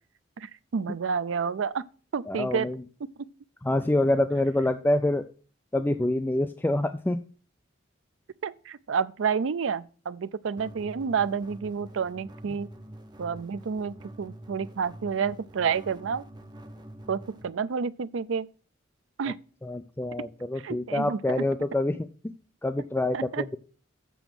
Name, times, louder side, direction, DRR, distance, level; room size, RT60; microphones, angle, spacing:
voice 1, 0.4-1.8 2.1-2.7 8.4-12.7 13.2-16.2 17.1-18.5 19.2-19.4 20.6-21.2 23.1-23.4, right 6 dB, 80° right, 0.5 m, -29 dB
voice 2, 2.3-2.8 3.6-5.3 5.7-7.2 19.6-22.0 22.6-23.6, left 1 dB, 10° left, 0.3 m, -26 dB
sound 1, 10.6-17.4, right 1 dB, 20° right, 0.7 m, -46 dB
7.1 x 7.0 x 6.0 m
head